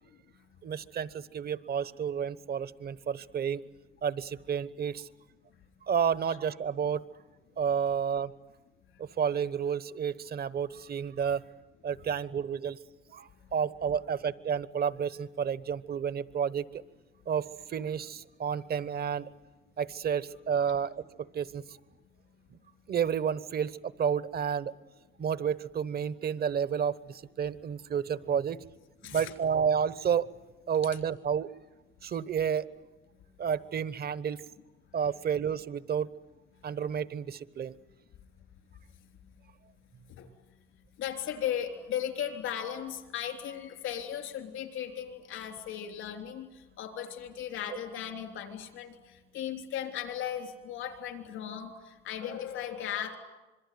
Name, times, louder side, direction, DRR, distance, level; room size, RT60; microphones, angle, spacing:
voice 1, 0.6-3.6 4.0-5.1 5.9-7.0 7.6-8.3 9.0-11.4 11.8-12.8 13.1-16.6 17.3-19.3 19.8-21.6 22.9-24.7 25.2-28.6 29.0-30.3 30.7-31.5 32.0-32.7 33.4-34.4 34.9-36.1 36.6-37.8, right 7 dB, 50° right, 17 dB, 1.0 m, -30 dB
voice 2, 41.0-53.1, left 9 dB, 85° left, 7 dB, 3.6 m, -37 dB
26.5 x 22.5 x 9.4 m, 1.1 s
cardioid pair, 90°, 20 cm